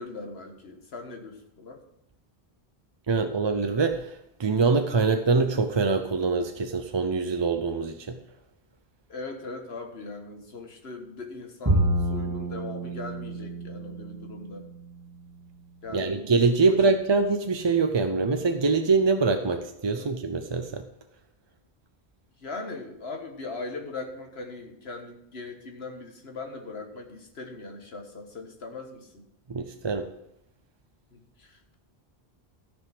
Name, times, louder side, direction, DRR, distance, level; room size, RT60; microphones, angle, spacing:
voice 1, 0.0-1.8 9.1-14.7 15.8-16.2 16.6-16.8 19.9-20.1 22.4-29.3 31.1-31.8, left 3 dB, 85° left, 4 dB, 1.7 m, -40 dB
voice 2, 3.1-4.1 4.4-8.2 15.9-20.8 29.5-30.1, right 4 dB, 35° right, 6 dB, 0.5 m, -24 dB
Bowed string instrument, 11.7-15.1, right 1 dB, 20° right, 1.6 m, -28 dB
14.0 x 5.2 x 6.0 m, 0.80 s
omnidirectional pair, 1.0 m